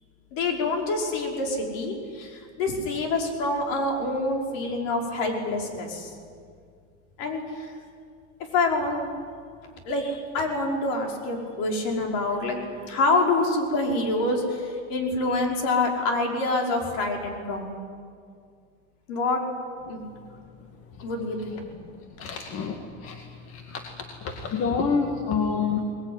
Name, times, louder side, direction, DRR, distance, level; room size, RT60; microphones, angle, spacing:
voice 1, 0.3-6.1 7.2-7.7 8.5-9.1 9.9-12.6 12.9-17.7 19.1-19.4 19.9-20.0 21.0-21.7, left 2 dB, 55° left, 1 dB, 5.4 m, -26 dB
voice 2, 22.2-23.2 23.5-23.9 24.2-25.8, left 5 dB, 40° left, 3 dB, 2.2 m, -27 dB
21.5 x 20.5 x 9.8 m, 2.2 s
supercardioid pair, 145°, 35 cm